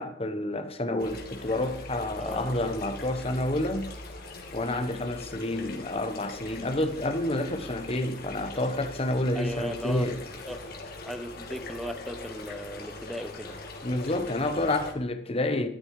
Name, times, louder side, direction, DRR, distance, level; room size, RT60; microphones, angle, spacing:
voice 1, 0.0-3.9 4.5-10.2 13.8-15.7, left 1 dB, 35° left, 1.3 m, -29 dB
sound 1, 1.0-14.9, left 2 dB, 55° left, 2.9 m, -41 dB
voice 2, 2.2-2.6 9.3-10.2 10.5-10.6 11.0-13.6, equal, ahead, 1.0 m, -37 dB
13.5 x 12.5 x 4.9 m
head